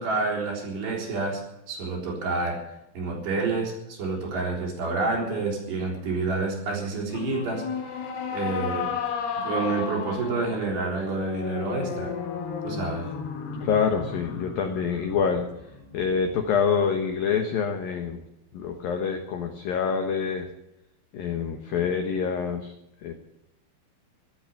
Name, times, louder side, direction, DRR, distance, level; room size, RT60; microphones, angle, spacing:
voice 1, 0.0-2.6 2.9-7.7 8.3-8.9 9.4-12.1 12.6-13.1, right 3 dB, 55° right, -1 dB, 5.7 m, -28 dB
sound 1, 7.1-16.5, left 6 dB, 60° left, 3.3 m, -34 dB
voice 2, 13.6-15.5 15.9-18.2 18.5-20.5 21.1-22.7 23.0-23.1, left 6 dB, 75° left, 5 dB, 2.1 m, -26 dB
15.0 x 12.0 x 7.1 m, 0.85 s
omnidirectional pair, 6.0 m